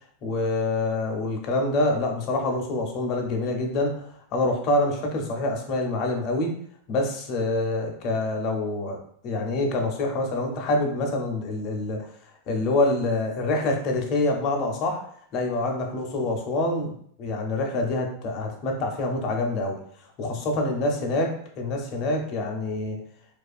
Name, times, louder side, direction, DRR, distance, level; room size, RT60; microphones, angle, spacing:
voice 1, 0.2-6.5 6.9-9.0 9.2-12.1 12.5-15.0 15.3-16.9 17.2-19.8 20.2-21.3 21.6-23.0, left 2 dB, 45° left, 1 dB, 0.6 m, -26 dB
2.4 x 2.3 x 2.4 m, 0.62 s
hypercardioid pair, 125°, 0 cm